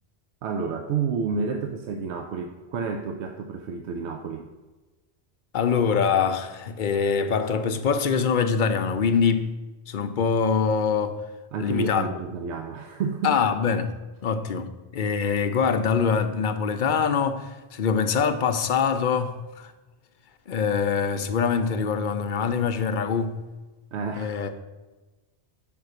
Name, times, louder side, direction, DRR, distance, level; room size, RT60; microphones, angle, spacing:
voice 1, 0.4-4.5 11.5-13.4 23.9-24.3, right 5 dB, 90° right, 0.9 m, -30 dB
voice 2, 5.5-9.5 9.9-11.2 11.6-12.1 13.2-13.9 14.2-19.7 20.5-23.4 24.2-24.5, left 6 dB, 55° left, 0.6 m, -24 dB
5.9 x 5.4 x 6.5 m
omnidirectional pair, 1.1 m